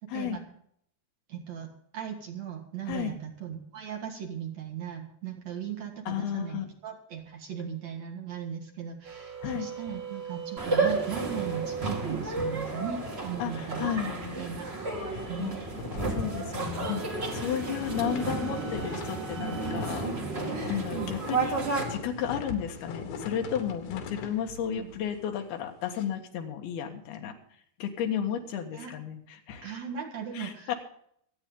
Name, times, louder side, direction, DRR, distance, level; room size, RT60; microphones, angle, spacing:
voice 1, 0.1-0.4 2.9-3.1 6.1-6.7 9.4-9.7 13.4-14.4 15.1-15.6 16.1-21.6 21.9-27.3 27.8-29.7 30.3-30.7, left 9 dB, 70° left, 4 dB, 3.4 m, -33 dB
voice 2, 1.3-1.7 1.9-14.7 15.3-15.7 20.9-21.1 24.7-24.9 28.7-28.9 29.6-30.7, right 8 dB, 55° right, 2 dB, 2.4 m, -38 dB
sound 1, 9.0-15.3 15.7-20.0, right 7 dB, 75° right, 4.9 m, -43 dB
sound 2, 10.6-21.8, right 3 dB, 35° right, 1.0 m, -32 dB
sound 3, 11.8-14.1 14.4-14.5 14.9-26.0, left 4 dB, 90° left, 3.8 m, -43 dB
25.0 x 8.9 x 3.8 m, 0.68 s
omnidirectional pair, 4.7 m